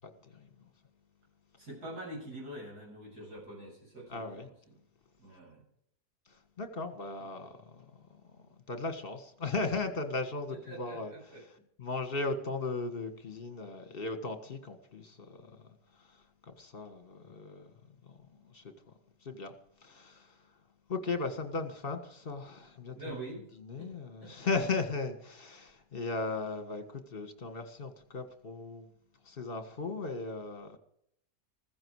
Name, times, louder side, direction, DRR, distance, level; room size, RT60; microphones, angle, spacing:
voice 1, 0.2-0.7 4.1-4.5 6.3-8.1 8.4-11.1 11.8-15.7 16.0-16.2 16.5-17.7 18.0-18.7 19.2-19.5 19.8-20.4 20.9-23.0 23.6-28.9 29.3-30.8, left 3 dB, 35° left, 1.8 m, -37 dB
voice 2, 1.6-4.4 5.2-5.7 7.4-7.5 10.5-11.4 22.9-23.5 23.8-23.9 24.2-24.5, right 1 dB, 80° right, 7.8 m, -45 dB
15.0 x 15.0 x 4.8 m
omnidirectional pair, 1.7 m